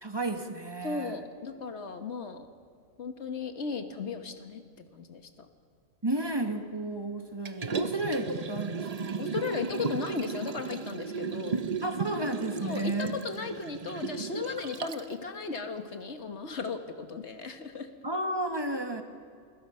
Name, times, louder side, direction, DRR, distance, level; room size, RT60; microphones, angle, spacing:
voice 1, 0.0-1.2 6.0-9.2 11.8-13.2 18.0-19.0, right 1 dB, 20° right, 5 dB, 1.5 m, -32 dB
voice 2, 0.8-2.5 3.0-4.6 4.9-5.5 9.2-11.6 12.6-17.9, left 4 dB, 55° left, 7 dB, 1.8 m, -36 dB
Liquid, 7.5-15.1 15.6-15.7, right 5 dB, 35° right, 0.7 m, -35 dB
28.5 x 21.0 x 5.7 m, 2.3 s
omnidirectional pair, 1.4 m